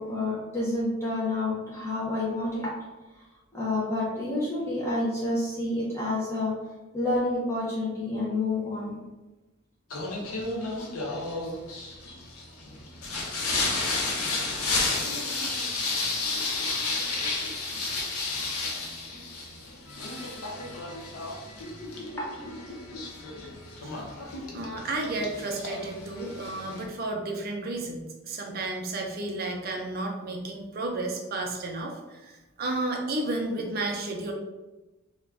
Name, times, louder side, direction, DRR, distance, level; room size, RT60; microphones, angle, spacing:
voice 1, 0.0-2.7 3.5-6.5 6.9-9.0 12.1-12.2 22.2-22.3 24.2-24.3, left 2 dB, 10° left, -7 dB, 0.5 m, -29 dB
Singing, 9.9-26.8, left 3 dB, 90° left, 0.6 m, -32 dB
voice 2, 24.5-34.3, right 2 dB, 45° right, 1 dB, 0.4 m, -32 dB
2.4 x 2.2 x 3.2 m, 1.1 s
head